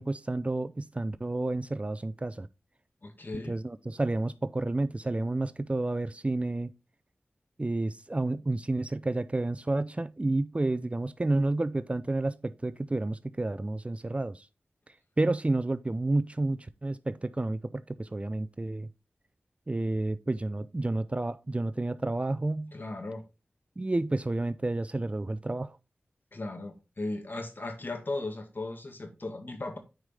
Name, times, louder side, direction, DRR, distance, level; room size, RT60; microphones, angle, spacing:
voice 1, 0.0-2.5 3.5-6.7 7.6-14.5 15.2-18.9 19.7-22.7 23.8-25.8, right 2 dB, 30° right, 0.5 m, -30 dB
voice 2, 3.0-3.6 22.7-23.2 26.3-29.8, left 2 dB, 50° left, 1.9 m, -37 dB
9.2 x 4.9 x 3.4 m
cardioid pair, 45°, 4 cm